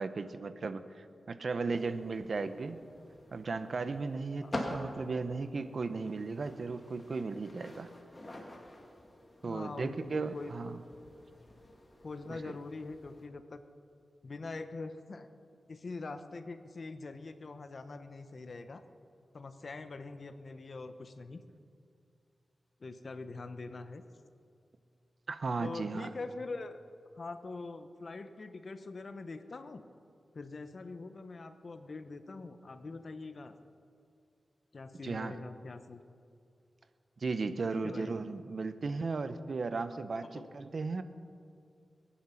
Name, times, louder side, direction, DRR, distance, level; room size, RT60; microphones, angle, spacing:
voice 1, 0.0-2.8 3.3-7.9 9.4-10.8 12.3-12.5 25.3-26.1 35.0-35.4 37.2-41.0, right 4 dB, 60° right, 11 dB, 0.8 m, -36 dB
sound 1, 1.8-13.2, left 1 dB, 25° left, 2.4 m, -47 dB
voice 2, 9.4-10.0 10.3-10.9 12.0-13.6 14.2-15.3 15.7-18.8 19.3-21.4 22.8-24.0 25.6-26.8 27.1-29.8 30.3-33.5 34.7-36.0 37.7-38.2 39.9-40.0 40.3-40.5, left 3 dB, 50° left, 9 dB, 1.0 m, -43 dB
22.0 x 10.0 x 5.8 m, 2.3 s
wide cardioid pair, 95°, 0 cm